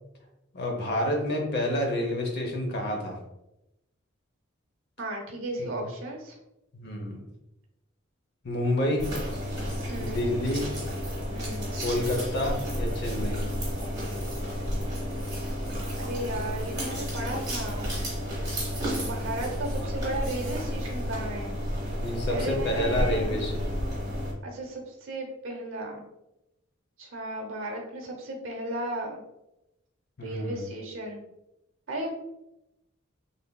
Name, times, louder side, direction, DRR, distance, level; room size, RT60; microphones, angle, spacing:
voice 1, 0.5-3.2 5.6-5.7 6.7-7.2 8.4-9.1 10.0-10.7 11.8-13.4 22.0-23.8 30.2-30.6, left 1 dB, 55° left, 1 dB, 0.6 m, -29 dB
voice 2, 5.0-6.4 9.9-10.3 11.3-11.7 13.2-13.6 16.0-17.9 18.9-21.6 22.3-23.5 24.4-26.0 27.0-29.2 30.2-31.2 31.9-32.1, right 1 dB, 75° right, 1 dB, 0.8 m, -35 dB
sound 1, 9.0-24.3, equal, 20° right, 1.0 m, -31 dB
3.3 x 2.6 x 2.2 m, 0.90 s
head